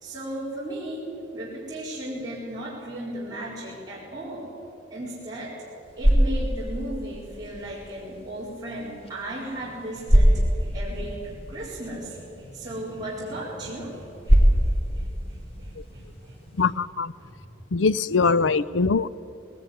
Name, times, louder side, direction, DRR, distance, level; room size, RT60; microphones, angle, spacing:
voice 1, 0.0-1.0 1.3-4.5 4.9-5.5 6.0-16.7 17.2-17.3, right 1 dB, 20° right, -8 dB, 4.7 m, -36 dB
sound 1, 5.6-16.7, equal, 35° left, 3.8 m, -25 dB
voice 2, 16.6-17.1 17.7-19.1, left 4 dB, 90° left, 18 dB, 0.6 m, -22 dB
19.5 x 18.5 x 9.5 m, 2.8 s
head